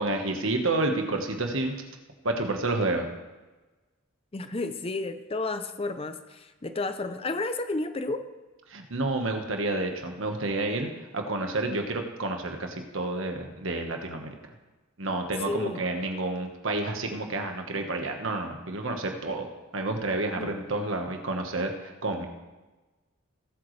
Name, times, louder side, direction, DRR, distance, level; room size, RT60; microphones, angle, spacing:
voice 1, 0.0-1.8 2.2-3.1 8.7-14.4 15.0-22.3, right 2 dB, 70° right, 4 dB, 1.4 m, -30 dB
voice 2, 4.3-8.2 15.5-15.9 20.3-20.5, left 2 dB, 25° left, 9 dB, 0.6 m, -32 dB
19.0 x 8.3 x 3.3 m, 1.2 s
head